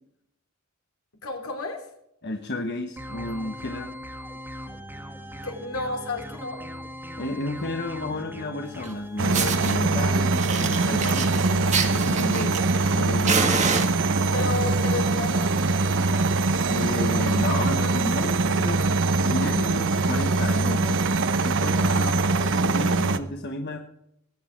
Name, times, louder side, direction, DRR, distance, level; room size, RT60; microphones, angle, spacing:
voice 1, 1.2-1.8 5.4-6.6 14.3-15.5 21.8-22.9, left 2 dB, 75° left, 4 dB, 3.0 m, -32 dB
voice 2, 2.2-3.9 7.2-12.6 12.9-13.7 16.7-18.9 19.2-21.0 21.4-22.1 22.6-23.8, left 2 dB, 55° left, 3 dB, 1.3 m, -32 dB
sound 1, 3.0-9.8, equal, 10° right, 2.0 m, -39 dB
Fire, 8.8-8.9 9.3-9.7 10.3-12.9 13.3-14.4 15.2-15.5 15.8-15.9 16.3-16.4 16.6-16.9 17.4-17.5 18.5-18.6, right 5 dB, 35° right, 1.5 m, -27 dB
sound 2, 9.2-23.2, right 3 dB, 60° right, 0.9 m, -23 dB
20.0 x 8.3 x 4.5 m, 0.77 s
head